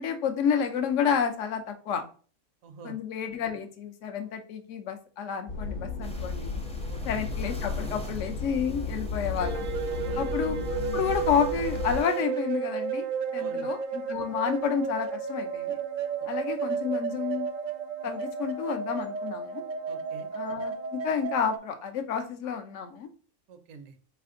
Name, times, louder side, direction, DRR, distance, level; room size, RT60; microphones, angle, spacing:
voice 1, 0.0-2.0 2.8-6.6 7.1-9.7 10.2-13.1 13.3-15.8 16.2-17.5 18.0-19.6 20.3-23.1, left 7 dB, 70° left, 7 dB, 1.0 m, -30 dB
voice 2, 2.6-3.0 6.9-7.0 9.9-10.3 13.4-13.7 19.9-20.3 23.5-24.0, right 4 dB, 75° right, 9 dB, 1.1 m, -46 dB
sound 1, 5.5-12.0, left 4 dB, 50° left, 0.8 m, -34 dB
sound 2, 6.0-12.2, equal, 10° left, 0.4 m, -49 dB
sound 3, 9.4-21.6, right 6 dB, 55° right, 0.6 m, -33 dB
4.3 x 3.3 x 3.7 m, 0.39 s
omnidirectional pair, 1.4 m